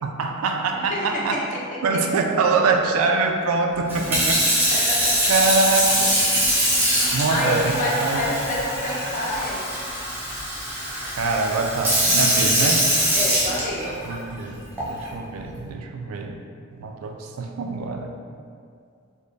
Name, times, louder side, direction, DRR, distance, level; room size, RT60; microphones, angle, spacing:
voice 1, 0.0-1.5 1.8-4.4 5.3-6.2 7.1-8.4 11.2-12.9 14.0-16.4 16.7-18.1, right 3 dB, 85° right, 4 dB, 0.4 m, -24 dB
voice 2, 0.7-1.4 4.7-5.3 6.8-9.6 13.1-13.9, left 1 dB, 35° left, -4 dB, 0.6 m, -28 dB
Sink (filling or washing) / Fill (with liquid), 3.9-14.1 14.8-15.1, equal, 10° right, 0.7 m, -22 dB
3.3 x 2.1 x 3.9 m, 2.3 s
head